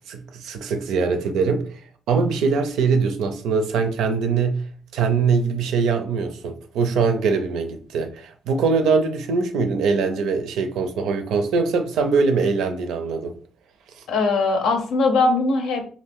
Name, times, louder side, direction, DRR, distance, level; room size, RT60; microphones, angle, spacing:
voice 1, 0.1-1.8 2.1-4.6 4.9-13.3, right 5 dB, 85° right, 7 dB, 0.5 m, -22 dB
voice 2, 14.1-15.8, left 3 dB, 85° left, 5 dB, 0.7 m, -20 dB
2.7 x 2.5 x 3.5 m, 0.44 s
cardioid pair, 90°, 0 cm